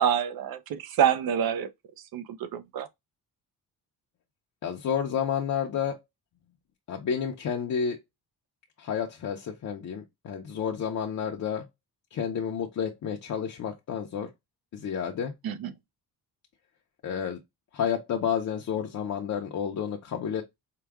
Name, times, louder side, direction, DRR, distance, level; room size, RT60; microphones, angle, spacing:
voice 1, 0.0-1.7 2.1-2.9 15.4-15.7, right 9 dB, 65° right, 0.7 m, -27 dB
voice 2, 4.6-6.0 6.9-8.0 8.8-11.7 12.1-14.3 14.7-15.3 17.0-17.4 17.7-20.4, left 7 dB, 50° left, 0.7 m, -30 dB
4.8 x 2.2 x 3.4 m
cardioid pair, 165°, 38 cm